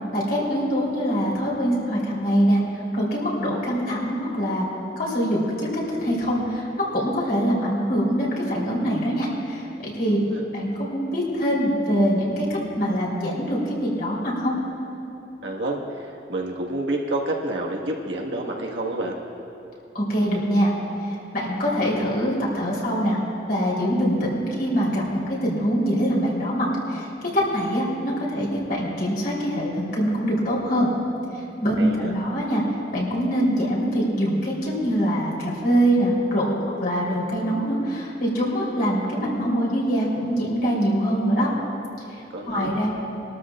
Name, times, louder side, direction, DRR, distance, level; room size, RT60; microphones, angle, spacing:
voice 1, 0.1-4.7 5.0-10.2 10.5-14.5 19.9-20.7 21.0-23.2 23.5-30.9 31.6-32.6 32.9-41.5 42.5-42.9, equal, 60° left, -5 dB, 3.5 m, -24 dB
voice 2, 10.1-10.4 15.4-19.2 31.8-32.1 42.3-42.7, right 1 dB, 80° right, -1 dB, 1.6 m, -29 dB
22.0 x 13.0 x 2.4 m, 2.8 s
head